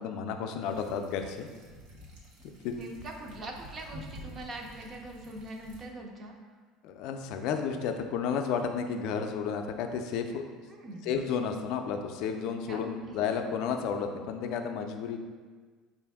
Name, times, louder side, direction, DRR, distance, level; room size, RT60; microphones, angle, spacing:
voice 1, 0.0-1.5 2.6-2.7 6.8-10.4 11.1-15.2, left 6 dB, 65° left, 5 dB, 0.4 m, -32 dB
sound 1, 0.6-5.8, equal, 75° right, 0.9 m, -49 dB
voice 2, 2.6-6.3 10.7-11.1 12.6-12.8 13.1-13.2, right 1 dB, 30° right, 1 dB, 0.5 m, -43 dB
4.8 x 2.5 x 3.4 m, 1.5 s
cardioid pair, 145°, 0 cm